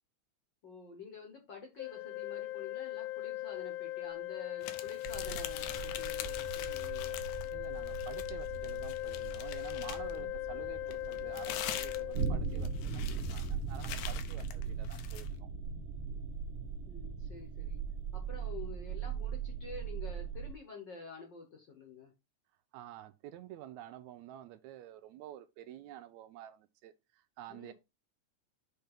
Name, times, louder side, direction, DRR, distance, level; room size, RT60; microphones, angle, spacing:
voice 1, 0.6-7.2 10.1-10.3 14.6-14.7 16.9-17.8 18.1-22.1 27.5-27.7, left 4 dB, 50° left, 1.4 m, -49 dB
Organ, 1.8-12.8, left 15 dB, 75° left, 1.5 m, -39 dB
sound 1, 4.6-7.5 7.8-10.2 10.9-15.3, left 12 dB, 90° left, 2.2 m, -44 dB
sound 2, 5.0-20.5, right 5 dB, 55° right, 2.1 m, -39 dB
voice 2, 7.5-15.5 22.7-27.7, right 12 dB, 80° right, 1.8 m, -50 dB
6.5 x 3.4 x 5.9 m
omnidirectional pair, 3.4 m